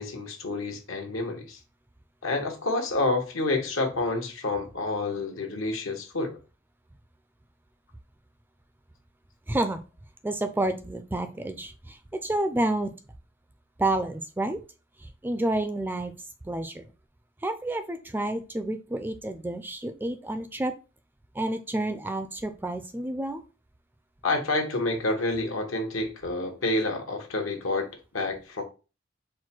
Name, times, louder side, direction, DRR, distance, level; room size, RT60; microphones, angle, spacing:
voice 1, 0.0-1.6 2.2-6.4 24.2-27.9 28.1-28.6, left 2 dB, 80° left, 1.1 m, -28 dB
voice 2, 9.5-9.8 10.2-12.9 13.8-14.6 15.0-16.1 16.4-16.9 17.4-20.7 21.3-23.4, right 1 dB, 10° right, 0.3 m, -29 dB
4.5 x 2.2 x 4.3 m
head